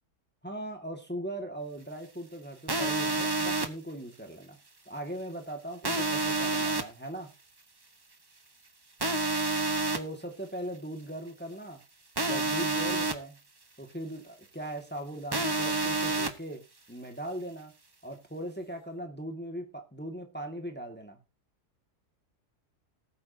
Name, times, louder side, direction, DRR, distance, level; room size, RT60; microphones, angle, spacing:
voice 1, 0.4-4.6 4.9-7.3 9.9-11.8 12.2-13.4 13.8-16.6 16.9-17.7 18.0-21.2, right 1 dB, 5° left, 4 dB, 1.8 m, -39 dB
sound 1, 2.7-3.7 5.8-6.8 9.0-10.0 12.2-13.1 15.3-16.3, right 3 dB, 20° right, 0.7 m, -28 dB
19.0 x 8.3 x 2.8 m, 0.27 s
omnidirectional pair, 1.7 m